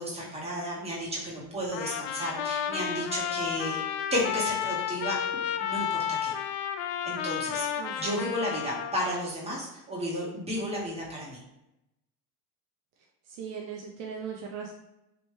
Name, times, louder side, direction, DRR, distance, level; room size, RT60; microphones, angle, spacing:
voice 1, 0.0-6.3 7.0-7.7 8.0-11.4, equal, 15° right, -5 dB, 1.3 m, -33 dB
Trumpet, 1.7-9.2, left 9 dB, 55° left, 0.5 m, -32 dB
voice 2, 7.8-8.3 13.3-14.7, right 6 dB, 60° right, 0 dB, 0.7 m, -38 dB
3.2 x 2.6 x 3.2 m, 0.89 s
hypercardioid pair, 90°, 48 cm